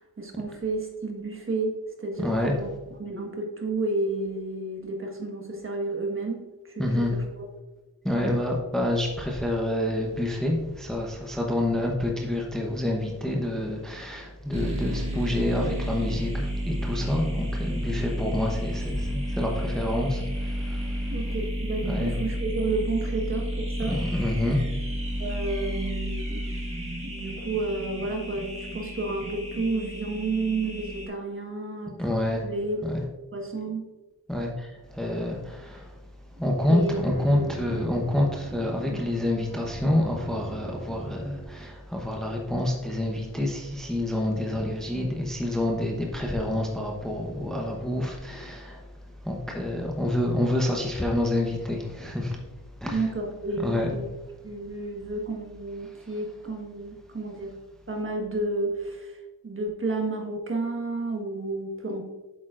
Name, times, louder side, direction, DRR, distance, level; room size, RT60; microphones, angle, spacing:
voice 1, 0.2-1.7 2.0-2.7 3.0-7.4 21.1-24.0 25.2-26.4 27.0-32.1 32.4-32.8 33.3-33.9 36.7-37.0 37.3-37.9 38.9-39.0 52.9-54.0 54.4-57.5 57.9-59.2 59.4-62.0, right 2 dB, 30° right, 1 dB, 1.4 m, -31 dB
voice 2, 2.2-2.6 6.8-7.1 8.0-21.2 21.8-22.1 23.9-24.6 32.0-32.4 32.8-33.0 34.3-36.0 36.4-52.4 52.8-53.1 53.6-53.9 55.8-56.1, left 1 dB, ahead, -1 dB, 0.9 m, -28 dB
sound 1, 14.5-31.1, equal, 15° right, 1.6 m, -31 dB
Bowed string instrument, 36.8-41.7, right 3 dB, 90° right, 2.4 m, -41 dB
8.4 x 6.9 x 2.5 m, 1.1 s
wide cardioid pair, 110°, 39 cm